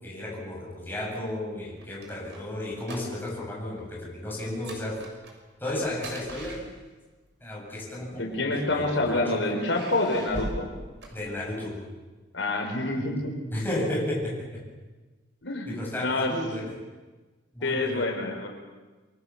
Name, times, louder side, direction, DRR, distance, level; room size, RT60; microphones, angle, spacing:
voice 1, 0.0-5.0 5.6-6.6 7.4-9.8 11.1-11.8 13.5-14.6 15.7-16.7 17.5-18.2, left 1 dB, 10° left, -3 dB, 8.0 m, -33 dB
sound 1, 1.6-3.5 3.7-4.0 4.4-7.2 8.1-8.9 9.5-11.8, right 1 dB, 65° right, 6.3 m, -41 dB
voice 2, 8.1-10.7 12.3-13.3 15.4-15.7 16.0-16.3 17.6-18.5, left 2 dB, 80° left, 2 dB, 4.8 m, -27 dB
28.0 x 23.5 x 7.3 m, 1.3 s
head